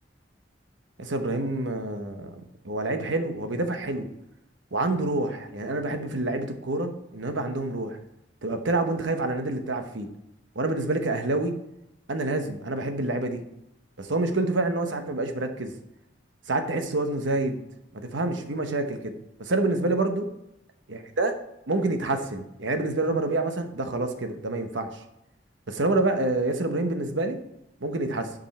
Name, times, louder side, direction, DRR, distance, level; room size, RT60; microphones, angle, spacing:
voice 1, 1.0-4.1 4.7-8.0 8.4-10.1 10.5-11.5 12.1-13.4 14.0-15.7 16.5-17.6 17.9-19.1 19.4-20.3 20.9-21.3 21.7-25.0 25.7-27.4 27.8-28.3, right 2 dB, 90° right, 6 dB, 1.1 m, -27 dB
10.5 x 5.3 x 4.3 m, 0.85 s
head